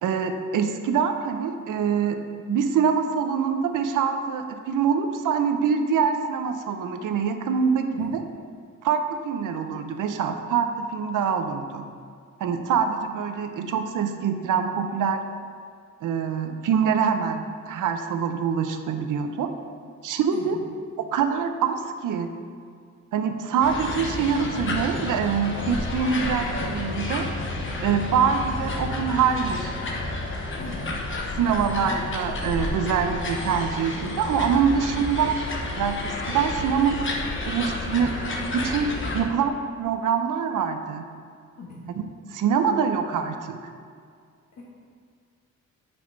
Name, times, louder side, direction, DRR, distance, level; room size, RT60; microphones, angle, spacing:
voice 1, 0.0-2.2 2.5-8.2 8.8-11.9 12.4-15.2 16.0-19.5 20.0-20.6 21.0-22.3 23.1-27.3 27.8-29.8 31.4-35.4 35.8-37.0 37.5-38.1 38.5-38.9 39.1-41.0 42.0-42.1 42.3-43.6, right 6 dB, 80° right, 7 dB, 0.7 m, -24 dB
voice 2, 7.9-8.1 20.3-20.6 30.6-30.9 41.6-41.8 44.6-44.7, left 3 dB, 60° left, -6 dB, 1.3 m, -39 dB
sound 1, 23.6-39.2, left 2 dB, 40° left, 1.0 m, -30 dB
6.2 x 4.6 x 6.0 m, 2.2 s
cardioid pair, 130°, 31 cm